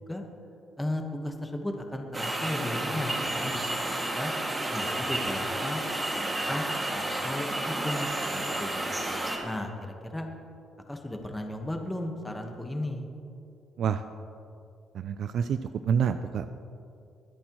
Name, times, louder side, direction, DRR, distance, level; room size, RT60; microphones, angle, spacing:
voice 1, 0.8-3.6 4.1-4.3 4.7-5.8 6.1-9.1 9.4-10.3 10.9-13.1, left 1 dB, 10° left, 3 dB, 1.3 m, -35 dB
sound 1, 2.1-9.4, right 1 dB, 20° right, 2.1 m, -31 dB
voice 2, 14.9-15.6 15.9-16.5, right 7 dB, 70° right, 10 dB, 0.4 m, -27 dB
23.0 x 8.6 x 3.1 m, 2.6 s
cardioid pair, 90°, 0 cm